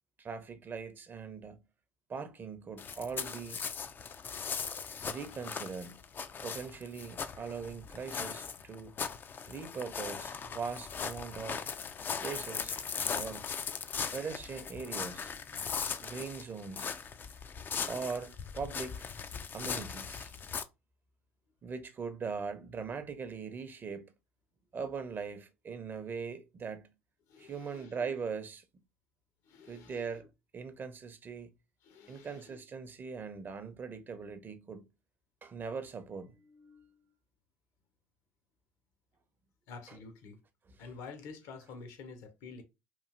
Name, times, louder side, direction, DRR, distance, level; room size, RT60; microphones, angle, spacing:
voice 1, 0.2-1.6 2.1-3.6 5.0-6.1 6.4-8.9 9.5-11.7 12.2-12.7 13.1-13.6 14.1-15.3 16.0-16.9 17.9-19.1 19.5-20.3 21.6-24.1 24.7-26.9 27.4-28.6 29.7-31.5 32.1-34.8 35.4-37.0 39.9-40.0 40.7-40.8, right 5 dB, 30° right, 0.6 m, -41 dB
sound 1, 2.8-20.6, left 6 dB, 35° left, 0.4 m, -39 dB
voice 2, 27.3-28.0 29.4-30.2 31.8-32.6 39.7-40.4 40.8-42.6, left 4 dB, 60° left, 0.8 m, -49 dB
3.1 x 2.5 x 2.4 m
hypercardioid pair, 65°, 6 cm